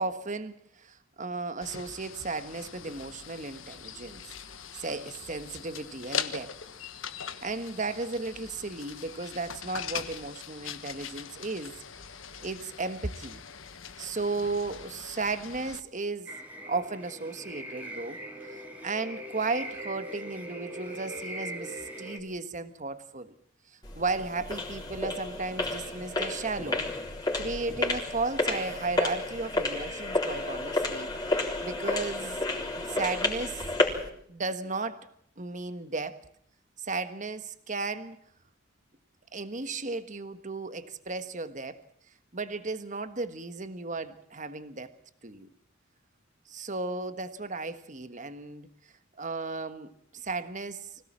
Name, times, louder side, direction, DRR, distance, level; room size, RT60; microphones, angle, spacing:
voice 1, 0.0-4.3 4.8-6.6 7.4-11.8 12.4-13.4 14.0-16.4 16.7-23.3 23.7-26.9 27.4-32.4 32.7-33.6 34.3-35.1 35.4-36.2 36.8-38.2 39.3-41.8 42.3-44.9 45.2-45.5 46.5-48.7 49.2-50.9, right 3 dB, 40° right, 11 dB, 1.4 m, -35 dB
sound 1, 1.6-15.8, left 8 dB, 75° left, 1.4 m, -41 dB
sound 2, 16.3-22.2, right 1 dB, 10° right, 2.8 m, -41 dB
sound 3, 23.8-34.1, left 2 dB, 20° left, 3.8 m, -31 dB
25.0 x 17.0 x 7.5 m, 0.67 s
head